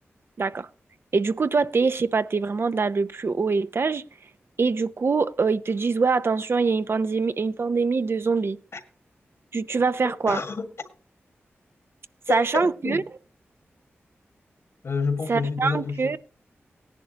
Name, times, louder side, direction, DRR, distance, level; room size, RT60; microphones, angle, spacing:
voice 1, 0.4-0.7 1.1-4.0 4.6-8.6 9.5-10.4 12.3-13.0 15.3-16.2, right 4 dB, 55° right, 0.6 m, -24 dB
voice 2, 10.0-10.7 12.3-13.0 14.8-16.2, left 4 dB, 70° left, 1.7 m, -29 dB
17.0 x 10.5 x 2.9 m
cardioid pair, 50°, 5 cm